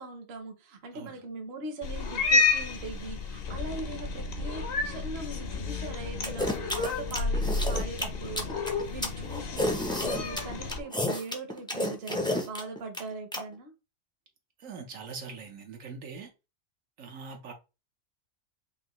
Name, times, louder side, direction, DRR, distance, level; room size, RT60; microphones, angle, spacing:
voice 1, 0.0-13.7, right 3 dB, 55° right, 1.1 m, -41 dB
Cat, 1.8-10.8, left 4 dB, 55° left, 0.9 m, -30 dB
Dog, 5.2-11.5, left 3 dB, 85° left, 2.2 m, -50 dB
sound 1, 6.2-13.4, left 1 dB, 5° left, 0.4 m, -31 dB
voice 2, 14.6-16.3 17.0-17.5, right 5 dB, 75° right, 1.3 m, -42 dB
5.4 x 2.7 x 3.0 m
omnidirectional pair, 1.4 m